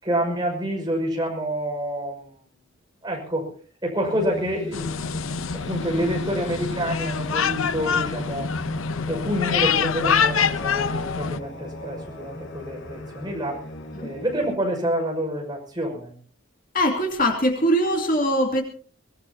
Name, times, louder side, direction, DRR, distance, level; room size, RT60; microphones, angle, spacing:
voice 1, 0.0-2.4 3.0-3.5 3.8-4.9 5.5-8.5 9.1-13.6 14.0-16.1, equal, 20° right, 0 dB, 5.9 m, -27 dB
sound 1, 4.0-14.5, left 1 dB, 60° left, 2.0 m, -38 dB
sound 2, 4.7-11.4, left 6 dB, 80° left, 0.8 m, -25 dB
voice 2, 16.7-18.6, equal, 40° left, 2 dB, 2.5 m, -22 dB
23.0 x 19.0 x 2.9 m, 0.43 s
head